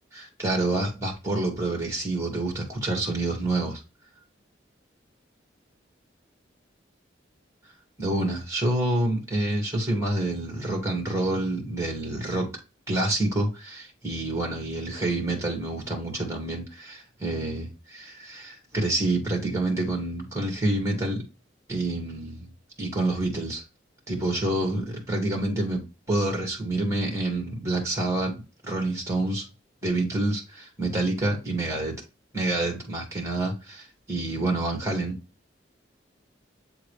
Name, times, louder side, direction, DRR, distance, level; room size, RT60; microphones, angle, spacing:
voice 1, 0.1-3.8 8.0-12.5 12.9-21.2 21.7-22.5 22.8-23.6 24.1-29.4 29.8-31.9 32.3-35.2, right 2 dB, 15° right, 1.9 m, -28 dB
7.8 x 3.8 x 3.2 m
head